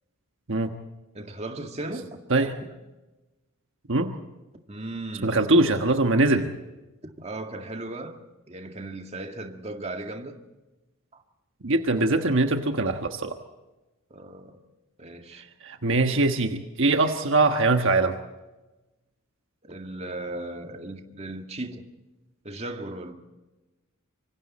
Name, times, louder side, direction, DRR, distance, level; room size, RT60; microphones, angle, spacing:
voice 1, 1.1-2.2 4.7-5.4 7.0-8.2 8.5-10.3 11.1-11.2 14.1-14.5 15.0-15.4 19.6-21.8 22.4-23.1, right 2 dB, 30° right, 2.0 m, -36 dB
voice 2, 5.2-6.5 11.6-13.4 15.6-18.2, right 2 dB, 60° right, 1.3 m, -22 dB
25.5 x 25.0 x 4.3 m
head